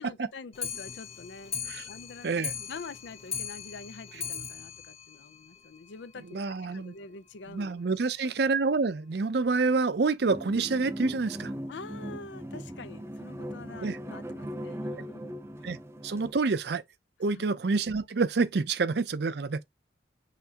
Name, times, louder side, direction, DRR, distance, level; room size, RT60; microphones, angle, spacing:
voice 1, 0.0-6.4 6.7-7.8 11.7-15.3 15.6-15.7 17.3-17.4, left 4 dB, 75° left, 0.6 m, -46 dB
Clock, 0.5-6.0 6.4-6.5 6.7-6.8 7.1-7.2 7.5-7.6 8.3-8.4 9.1-9.2 9.9-10.0, left 7 dB, 35° left, 1.0 m, -39 dB
voice 2, 6.2-6.9 7.5-11.5 13.8-14.0 15.6-15.8 16.0-16.8 17.2-19.6, right 4 dB, 60° right, 0.5 m, -27 dB
sound 1, 10.3-16.3, equal, 15° right, 0.5 m, -39 dB
5.8 x 3.1 x 2.9 m
head